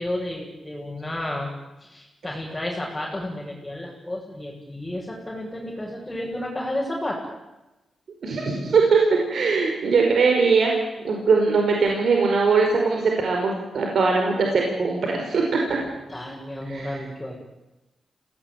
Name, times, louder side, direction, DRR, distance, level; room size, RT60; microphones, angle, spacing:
voice 1, 0.0-1.5 1.8-7.2 15.7-17.4, left 1 dB, 10° left, -5 dB, 7.2 m, -32 dB
voice 2, 8.2-10.7 11.0-15.8 16.7-16.9, right 4 dB, 70° right, 1 dB, 5.2 m, -21 dB
27.0 x 18.0 x 9.5 m, 1.0 s
cardioid pair, 85°, 0 cm